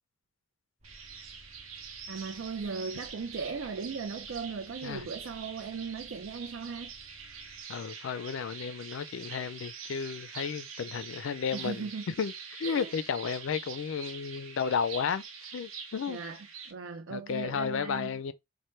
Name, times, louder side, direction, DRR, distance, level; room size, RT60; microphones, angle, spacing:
sound 1, 0.8-7.6, right 1 dB, 35° right, 0.7 m, -58 dB
sound 2, 0.8-16.7, right 6 dB, 85° right, 0.8 m, -45 dB
voice 1, 2.1-6.9 11.5-12.1 12.6-12.9 16.1-18.2, right 5 dB, 70° right, 0.4 m, -38 dB
voice 2, 7.7-15.2 15.5-16.2 17.1-18.3, left 6 dB, 70° left, 0.4 m, -33 dB
4.3 x 2.1 x 3.2 m
head